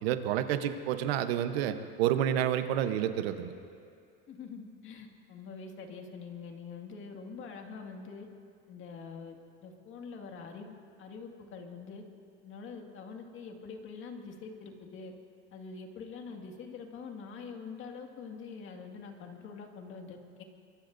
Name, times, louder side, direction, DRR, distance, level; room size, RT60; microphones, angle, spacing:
voice 1, 0.0-3.5, right 10 dB, 85° right, 9 dB, 1.0 m, -29 dB
voice 2, 4.3-8.3 8.7-9.4 9.6-12.0 12.4-15.1 15.5-20.4, left 5 dB, 40° left, 3 dB, 2.1 m, -45 dB
24.0 x 22.0 x 2.6 m, 2.3 s
supercardioid pair, 125°, 30 cm